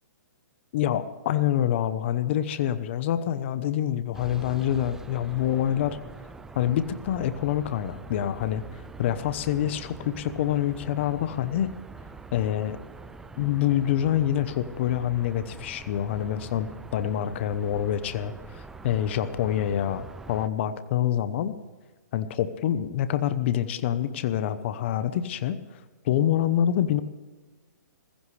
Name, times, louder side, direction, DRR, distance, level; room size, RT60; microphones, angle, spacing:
voice 1, 0.7-6.0 6.5-11.7 12.3-12.8 13.4-21.6 22.1-27.0, left 11 dB, 40° left, 12 dB, 0.9 m, -26 dB
sound 1, 4.1-20.5, right 3 dB, 5° right, 0.4 m, -44 dB
19.5 x 15.5 x 3.4 m, 1.3 s
hypercardioid pair, 155°, 10 cm